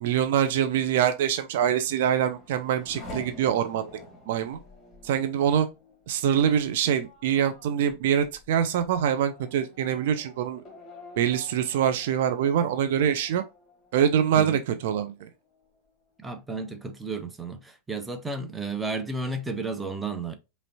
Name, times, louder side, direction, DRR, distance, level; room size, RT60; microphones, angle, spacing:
voice 1, 0.0-3.9 4.3-4.6 5.0-5.7 6.1-10.6 11.2-13.4 13.9-15.3, right 9 dB, 55° right, 0.5 m, -24 dB
Race car auto racing / Accelerating revving vroom, 1.7-14.8 15.2-15.9, left 2 dB, 20° left, 2.1 m, -49 dB
voice 2, 16.2-20.4, right 3 dB, 10° right, 0.8 m, -33 dB
5.2 x 3.2 x 2.7 m
figure-of-eight pair, 90°, 0 cm